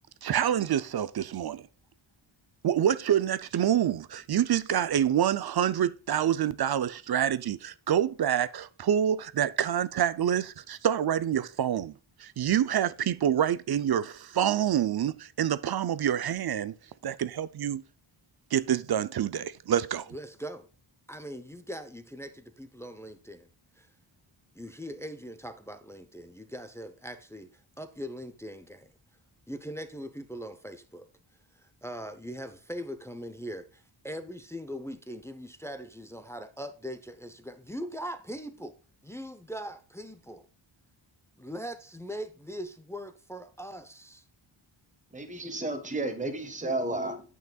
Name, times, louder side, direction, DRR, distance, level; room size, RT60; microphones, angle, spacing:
voice 1, 0.2-1.7 2.6-16.7 17.0-17.8 18.5-20.1, right 10 dB, 50° right, 0.5 m, -27 dB
voice 2, 20.1-20.7 21.1-23.5 23.8-23.9 24.5-27.5 27.8-28.9 29.5-31.1 31.8-38.7 39.0-40.5 41.4-44.2, equal, 5° left, 0.6 m, -40 dB
voice 3, 45.1-47.2, right 2 dB, 15° right, 1.2 m, -32 dB
9.2 x 5.8 x 2.3 m
wide cardioid pair, 95°, 49 cm